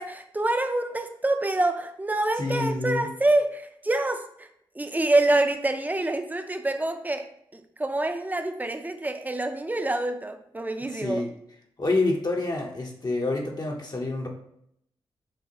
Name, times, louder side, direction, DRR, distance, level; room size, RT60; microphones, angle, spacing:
voice 1, 0.0-4.5 4.7-7.3 7.5-11.2, right 2 dB, 15° right, 7 dB, 0.5 m, -26 dB
voice 2, 2.4-3.1 10.9-11.3 11.8-14.3, left 2 dB, 40° left, 0 dB, 0.7 m, -27 dB
6.1 x 2.1 x 2.9 m, 0.72 s
supercardioid pair, 40°, 10 cm